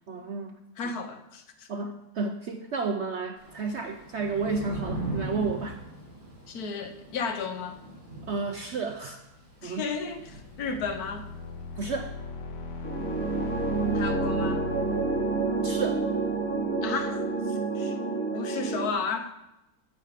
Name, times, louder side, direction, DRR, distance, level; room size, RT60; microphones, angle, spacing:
voice 1, 0.1-0.6 1.7-5.8 8.3-9.2 9.6-9.9 11.8-12.1 15.6-16.1, right 4 dB, 55° right, 6 dB, 0.8 m, -32 dB
voice 2, 0.8-1.7 6.5-7.8 9.6-11.3 13.9-14.7 16.8-18.0 18.3-19.3, left 5 dB, 65° left, 8 dB, 1.5 m, -33 dB
Thunder / Rain, 3.4-11.7, right 2 dB, 30° right, 2.9 m, -39 dB
sound 1, 9.7-17.5, left 3 dB, 85° left, 1.9 m, -38 dB
sound 2, 12.8-18.9, right 3 dB, 10° left, 1.5 m, -29 dB
15.0 x 6.6 x 5.0 m, 0.95 s
omnidirectional pair, 1.8 m